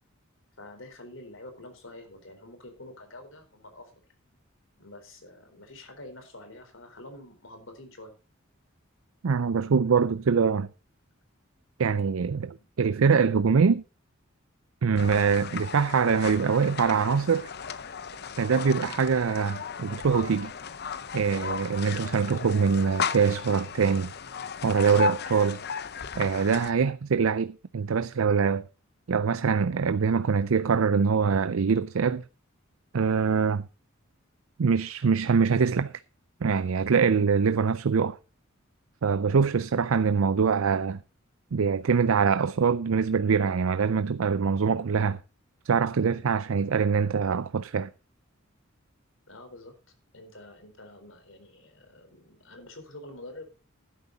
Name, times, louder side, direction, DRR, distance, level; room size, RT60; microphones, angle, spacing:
voice 1, 0.6-4.0 4.8-8.1 49.3-53.5, left 1 dB, 70° left, 4.2 m, -47 dB
voice 2, 9.2-10.7 11.8-13.8 14.8-17.5 18.4-20.5 21.1-24.1 24.6-25.6 26.2-28.7 29.1-32.2 32.9-33.7 34.6-35.9 36.4-38.2 39.0-41.0 41.5-45.2 45.6-47.9, right 5 dB, 85° right, 0.5 m, -24 dB
sound 1, 15.0-26.7, left 6 dB, 55° left, 0.7 m, -35 dB
12.0 x 11.0 x 4.0 m
head